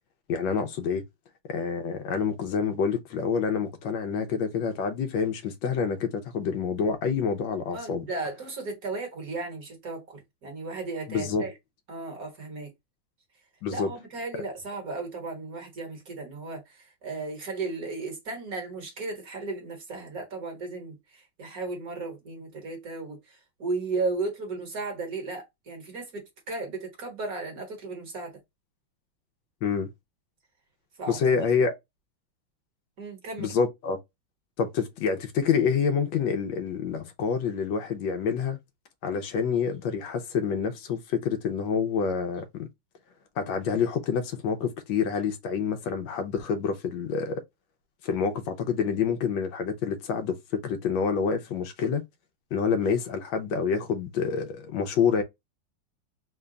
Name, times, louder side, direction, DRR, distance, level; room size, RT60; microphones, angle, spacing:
voice 1, 0.3-1.0 1.5-8.0 11.1-11.4 13.6-13.9 29.6-29.9 31.1-31.7 33.4-34.0 34.6-38.6 39.0-42.7 43.4-47.4 48.0-52.0 52.5-55.2, left 6 dB, 85° left, 1.5 m, -27 dB
voice 2, 7.7-11.5 11.9-12.7 13.7-28.4 31.0-31.2 33.0-33.5, right 3 dB, 50° right, 1.6 m, -35 dB
3.8 x 2.2 x 3.8 m
omnidirectional pair, 2.1 m